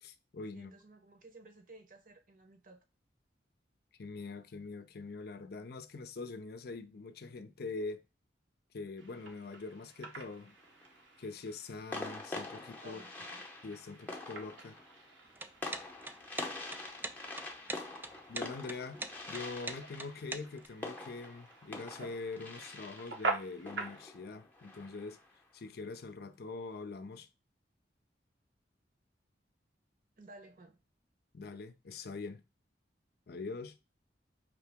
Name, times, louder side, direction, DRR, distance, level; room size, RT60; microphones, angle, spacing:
voice 1, 0.0-0.7 4.0-8.0 8.7-10.5 11.2-13.0 13.6-14.8 17.7-17.8 18.3-19.0 19.3-25.2 25.5-27.3 31.3-32.4 33.3-33.8, left 3 dB, 60° left, 0.5 m, -43 dB
voice 2, 0.5-2.8 12.8-13.4 30.2-30.8, right 2 dB, 50° right, 0.9 m, -56 dB
sound 1, 9.0-24.0, right 3 dB, 85° right, 1.0 m, -46 dB
sound 2, 10.4-11.0 11.9-25.3, left 2 dB, 10° left, 0.7 m, -45 dB
sound 3, 15.3-20.7, right 2 dB, 10° right, 0.3 m, -42 dB
5.0 x 2.9 x 3.5 m
head